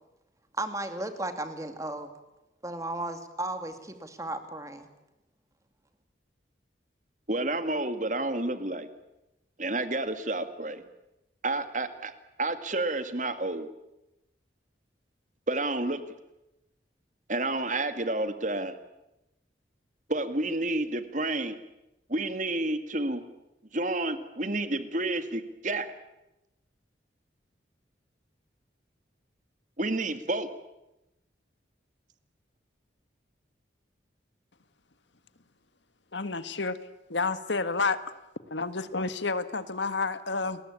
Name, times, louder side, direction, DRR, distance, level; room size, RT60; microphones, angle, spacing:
voice 1, 0.6-2.1 2.6-4.9, right 2 dB, 15° right, 8 dB, 2.4 m, -35 dB
voice 2, 7.3-8.9 9.6-10.8 11.4-12.1 12.4-13.7 15.5-16.0 17.3-18.8 20.1-21.6 22.1-23.2 23.7-25.9 29.8-30.5, right 2 dB, 40° right, 10 dB, 2.1 m, -30 dB
voice 3, 36.1-36.8 37.1-38.0 38.5-40.6, left 4 dB, 75° left, 12 dB, 1.6 m, -30 dB
29.5 x 21.0 x 8.7 m, 0.95 s
head